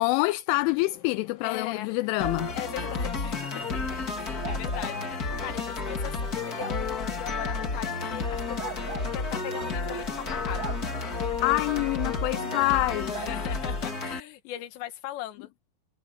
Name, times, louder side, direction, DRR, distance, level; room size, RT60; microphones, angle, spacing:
voice 1, 0.0-2.5 11.1-13.2, left 22 dB, 85° left, 3.0 m, -26 dB
sound 1, 0.5-13.9, left 10 dB, 50° left, 4.0 m, -52 dB
voice 2, 1.4-2.0 2.5-3.8 4.1-8.7 9.1-10.7 13.1-15.5, left 13 dB, 70° left, 3.5 m, -39 dB
sound 2, 2.2-14.2, left 4 dB, 30° left, 1.7 m, -31 dB
sound 3, 4.4-4.9 6.6-6.8 8.6-9.1 10.5-10.8 13.1-13.3, right 7 dB, 70° right, 4.2 m, -38 dB
omnidirectional pair, 5.6 m